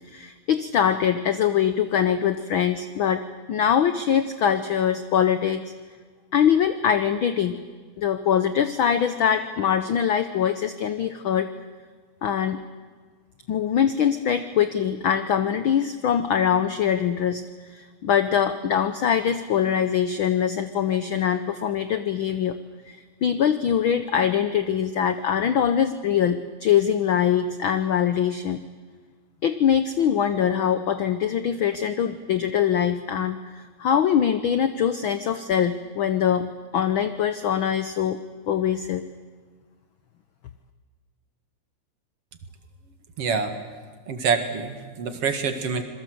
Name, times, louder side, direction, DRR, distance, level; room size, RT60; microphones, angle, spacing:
voice 1, 0.1-5.6 6.3-7.6 8.0-11.5 12.2-12.6 13.5-22.6 22.9-28.6 29.4-38.2 38.5-39.0, left 8 dB, 75° left, 11 dB, 1.1 m, -23 dB
voice 2, 43.2-43.6 44.1-45.8, right 5 dB, 55° right, 7 dB, 2.6 m, -26 dB
27.0 x 22.0 x 7.8 m, 1.5 s
omnidirectional pair, 3.4 m